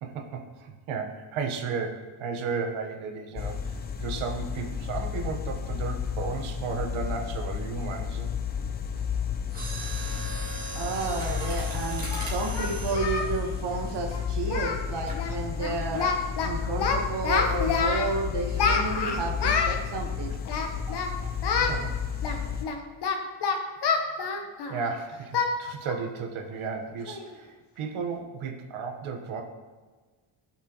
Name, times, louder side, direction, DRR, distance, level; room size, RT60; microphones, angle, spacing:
voice 1, 0.0-8.3 20.9-21.0 21.6-22.0 24.7-29.4, right 5 dB, 80° right, 3 dB, 1.2 m, -34 dB
sound 1, 3.4-22.7, left 7 dB, 20° left, 0.4 m, -32 dB
Mechanisms, 9.5-14.5 15.1-15.3 15.9-16.2 16.6-16.7, right 2 dB, 15° right, 2.1 m, -39 dB
voice 2, 10.7-16.1 16.4-20.4, right 3 dB, 55° right, 2 dB, 1.3 m, -31 dB
Singing, 11.3-11.4 12.1-13.3 13.6-13.8 14.1-14.2 14.5-14.9 15.1-15.3 15.6-16.5 16.8-18.1 18.6-19.8 20.5-21.1 21.4-21.8 22.2-24.9 25.3-25.5 25.9-26.1 26.5-26.6 27.1-27.3, left 5 dB, 55° left, 1.1 m, -27 dB
15.0 x 5.9 x 3.0 m, 1.4 s
cardioid pair, 180°, 49 cm